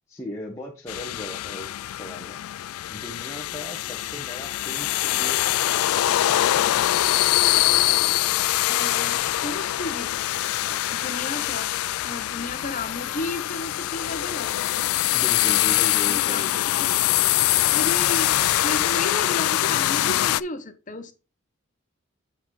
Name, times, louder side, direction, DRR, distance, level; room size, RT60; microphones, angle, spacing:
voice 1, 0.1-2.4 2.9-6.4 10.6-10.8 12.4-12.5 15.1-16.6, left 1 dB, 15° left, 1.1 m, -38 dB
sound 1, 0.9-20.4, left 14 dB, 90° left, 0.3 m, -23 dB
voice 2, 8.7-10.1 10.9-11.7 12.0-14.6 16.1-16.9 17.7-21.1, left 2 dB, 35° left, 0.9 m, -33 dB
8.1 x 4.8 x 4.0 m
head